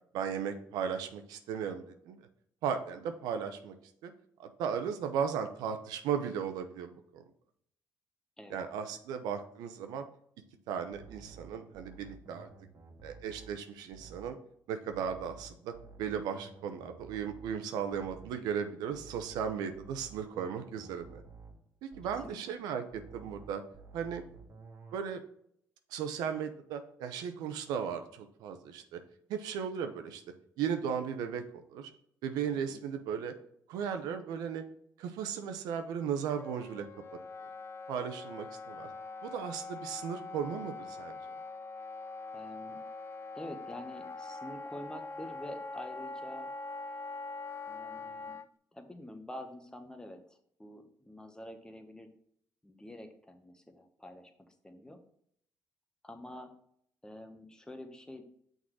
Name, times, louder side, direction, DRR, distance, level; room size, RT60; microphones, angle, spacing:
voice 1, 0.1-2.3 2.6-3.7 4.0-4.1 4.4-7.2 8.5-10.0 10.7-12.5 13.0-14.4 14.7-21.2 21.8-23.6 23.9-24.2 24.9-25.2 25.9-29.0 29.3-30.2 30.6-31.9 32.2-33.3 33.7-34.6 35.0-36.9 37.9-38.9 39.2-41.2, right 7 dB, 85° right, 7 dB, 0.7 m, -36 dB
sound 1, 10.9-14.4 14.9-18.4 18.9-22.4 22.9-25.0, right 4 dB, 50° right, 1.7 m, -53 dB
Wind instrument woodwind instrument, 36.4-48.5, left 3 dB, 40° left, 0.4 m, -43 dB
voice 2, 42.3-42.8 43.3-46.5 47.7-48.4 48.7-52.1 52.6-54.3 54.6-55.0 56.0-56.5 57.0-58.2, left 1 dB, 10° left, 6 dB, 1.2 m, -47 dB
6.1 x 4.1 x 4.7 m, 0.68 s
cardioid pair, 75°, 7 cm